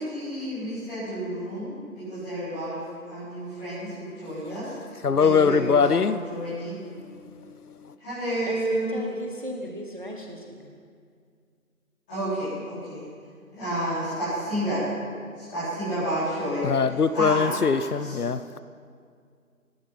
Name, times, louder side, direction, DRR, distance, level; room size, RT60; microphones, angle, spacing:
voice 1, 0.0-2.8 3.1-4.7 5.2-6.8 8.0-9.0 12.1-13.0 13.5-14.8 15.3-16.7 17.1-17.6 18.0-18.1, right 1 dB, 5° left, 4.5 m, -30 dB
voice 2, 5.0-6.2 7.0-7.9 16.6-18.6, left 5 dB, 80° left, 0.8 m, -23 dB
voice 3, 8.5-10.8, equal, 35° right, 1.0 m, -37 dB
16.5 x 14.5 x 6.1 m
figure-of-eight pair, 175°, 45 cm